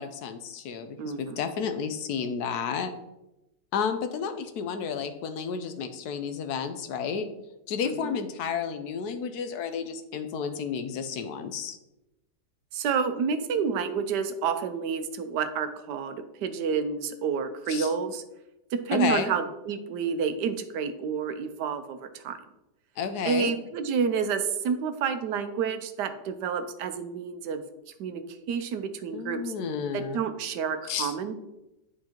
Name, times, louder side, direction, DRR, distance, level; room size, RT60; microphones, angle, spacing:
voice 1, 0.0-2.9 3.7-7.3 7.7-11.8 17.7-17.9 18.9-19.3 23.0-23.5 29.1-30.2 30.9-31.1, left 6 dB, 75° left, 9 dB, 1.1 m, -31 dB
voice 2, 1.0-1.4 7.8-8.2 12.7-18.2 18.7-22.4 23.2-27.6 28.0-28.2 28.5-29.5 29.9-31.3, right 6 dB, 80° right, 9 dB, 1.2 m, -29 dB
10.5 x 4.7 x 2.9 m, 0.94 s
omnidirectional pair, 1.8 m